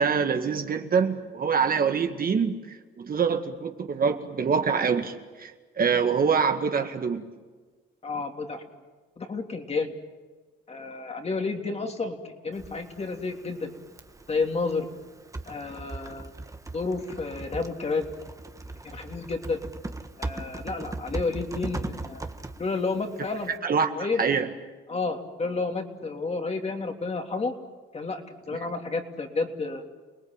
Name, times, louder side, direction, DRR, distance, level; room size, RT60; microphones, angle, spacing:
voice 1, 0.0-7.3 23.6-23.9 24.2-24.5, right 6 dB, 45° right, 6 dB, 1.9 m, -25 dB
voice 2, 8.0-8.6 9.2-9.9 10.7-13.7 14.3-14.9 15.5-16.3 16.7-18.0 18.8-19.6 20.2-22.3 22.6-23.5 23.9-24.2 24.9-27.5 27.9-29.8, left 3 dB, 30° left, 4 dB, 3.1 m, -30 dB
Typing, 12.5-23.6, right 2 dB, 15° right, 1.5 m, -39 dB
29.0 x 19.0 x 9.0 m, 1.3 s
cardioid pair, 90°, 20 cm